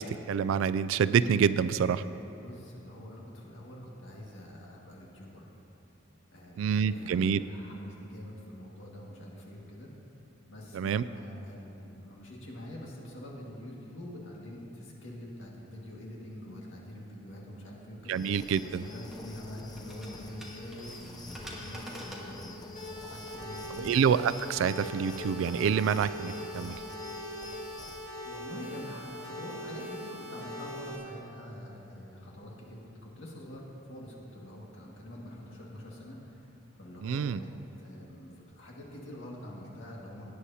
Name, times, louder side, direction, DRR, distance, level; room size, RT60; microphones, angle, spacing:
voice 1, 0.0-2.0 6.6-7.4 10.7-11.0 18.1-18.8 23.8-26.8 37.0-37.4, right 7 dB, 80° right, 15 dB, 0.3 m, -27 dB
voice 2, 2.4-5.5 6.3-9.9 10.5-18.4 18.6-23.9 28.2-36.5 36.8-37.5 37.8-40.3, left 1 dB, 75° left, -3 dB, 2.0 m, -45 dB
sound 1, 18.1-28.1, left 2 dB, 20° left, 0.6 m, -47 dB
sound 2, 18.4-23.5, equal, ahead, 1.5 m, -48 dB
sound 3, 22.8-31.0, equal, 40° left, 1.8 m, -41 dB
17.0 x 9.7 x 2.8 m, 3.0 s
head